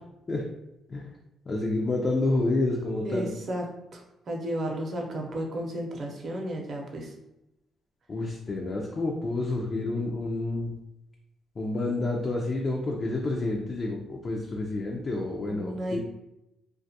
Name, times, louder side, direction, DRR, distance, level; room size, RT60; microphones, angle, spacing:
voice 1, 1.5-3.3 8.1-10.7 11.6-16.0, left 2 dB, 40° left, -1 dB, 0.4 m, -29 dB
voice 2, 3.0-3.6 3.9-7.1 15.4-16.0, right 1 dB, 50° right, 1 dB, 0.6 m, -33 dB
2.5 x 2.3 x 2.6 m, 0.90 s
cardioid pair, 90°, 0 cm